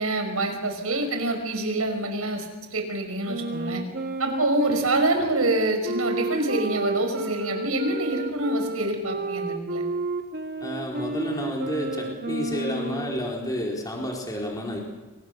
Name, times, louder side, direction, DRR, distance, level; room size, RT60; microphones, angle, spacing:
voice 1, 0.0-2.5 2.7-3.8 4.2-9.8, right 1 dB, 85° right, 5 dB, 5.8 m, -26 dB
Wind instrument woodwind instrument, 3.3-13.3, right 3 dB, 45° right, 1.7 m, -32 dB
voice 2, 10.6-14.8, equal, 15° left, -1 dB, 4.5 m, -30 dB
29.5 x 24.0 x 6.6 m, 1.1 s
head